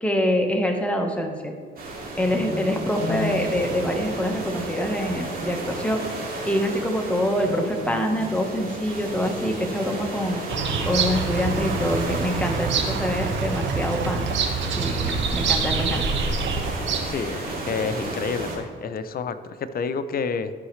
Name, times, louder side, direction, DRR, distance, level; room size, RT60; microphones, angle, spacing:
voice 1, 0.0-1.5 2.2-6.0 6.5-10.4 10.8-14.3 14.8-16.0, equal, 5° left, 2 dB, 1.3 m, -25 dB
sound 1, 1.8-18.6, right 2 dB, 50° right, 2.3 m, -33 dB
sound 2, 2.2-4.5 7.3-8.6 10.5-12.4, left 4 dB, 70° left, 1.1 m, -35 dB
Bird vocalization bird call bird song, 10.5-17.3, right 5 dB, 65° right, 1.1 m, -26 dB
voice 2, 17.1-20.5, left 5 dB, 50° left, 11 dB, 0.6 m, -29 dB
13.5 x 5.5 x 3.2 m, 2.1 s
cardioid pair, 90°, 20 cm